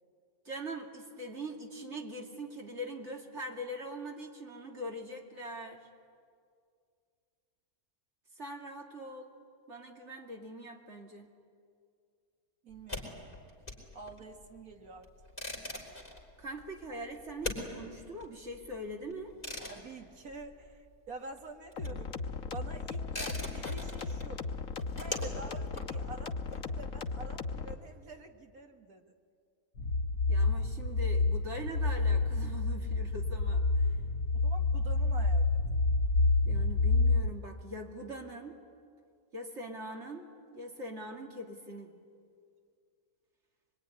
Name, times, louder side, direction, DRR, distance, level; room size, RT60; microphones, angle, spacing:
voice 1, 0.4-5.9 8.4-9.3 9.7-11.3 16.4-19.3 30.3-33.9 36.4-38.6 39.3-40.3 40.5-41.9, right 1 dB, 50° right, 1 dB, 2.8 m, -42 dB
voice 2, 12.6-13.1 13.9-15.1 19.7-22.1 22.5-24.5 24.9-29.1 34.3-35.6, right 3 dB, 70° right, 4 dB, 2.2 m, -47 dB
sound 1, 12.7-21.1 21.3-27.1, left 2 dB, 25° left, 4.0 m, -43 dB
sound 2, 21.8-27.7, left 4 dB, 65° left, 1.6 m, -37 dB
sound 3, 29.8-37.3, left 3 dB, 80° left, 1.5 m, -28 dB
25.0 x 22.5 x 9.8 m, 2.2 s
omnidirectional pair, 1.6 m